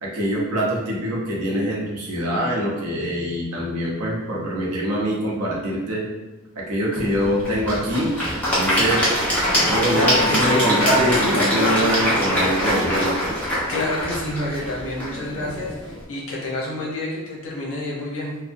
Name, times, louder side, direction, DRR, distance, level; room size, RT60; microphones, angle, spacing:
voice 1, 0.0-6.1 6.6-8.1 8.5-9.0 9.6-13.1, equal, 85° right, -3 dB, 0.7 m, -24 dB
Applause / Crowd, 6.9-16.0, equal, 5° left, 0.7 m, -23 dB
voice 2, 9.9-10.7 13.7-18.4, left 2 dB, 60° left, -4 dB, 0.7 m, -29 dB
2.6 x 2.0 x 2.5 m, 1.1 s
head